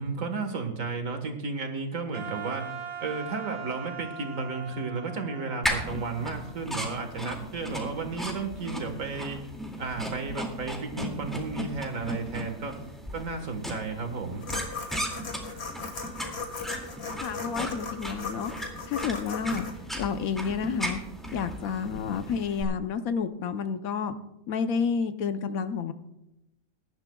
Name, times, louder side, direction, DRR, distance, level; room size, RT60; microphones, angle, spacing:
voice 1, 0.0-2.7 3.0-9.5 9.8-12.8 13.1-14.4, right 4 dB, 65° right, 5 dB, 1.8 m, -33 dB
Wind instrument woodwind instrument, 2.1-7.2, right 6 dB, 85° right, 1.8 m, -41 dB
sound 1, 5.6-22.6, equal, ahead, 2.0 m, -36 dB
sound 2, 14.4-19.7, left 4 dB, 50° left, 1.8 m, -38 dB
voice 2, 17.2-18.5 18.9-19.7 20.0-21.0 21.3-24.1 24.5-25.9, left 6 dB, 75° left, 10 dB, 1.2 m, -30 dB
22.5 x 11.5 x 2.3 m, 0.92 s
omnidirectional pair, 1.5 m